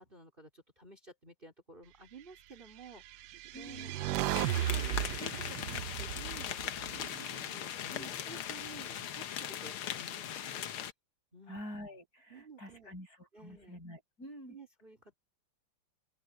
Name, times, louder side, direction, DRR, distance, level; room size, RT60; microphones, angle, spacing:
voice 1, 0.0-4.1 4.4-7.1 7.5-10.7 11.3-11.6 12.3-12.9 13.3-13.8 14.5-15.1, right 3 dB, 25° right, 4.1 m, -53 dB
sound 1, 3.1-7.4, right 13 dB, 75° right, 0.9 m, -35 dB
voice 2, 3.5-4.0 7.9-8.1 11.5-14.6, equal, 40° left, 8.3 m, -47 dB
sound 2, 4.3-10.9, left 10 dB, 80° left, 2.0 m, -39 dB
open air
omnidirectional pair, 2.4 m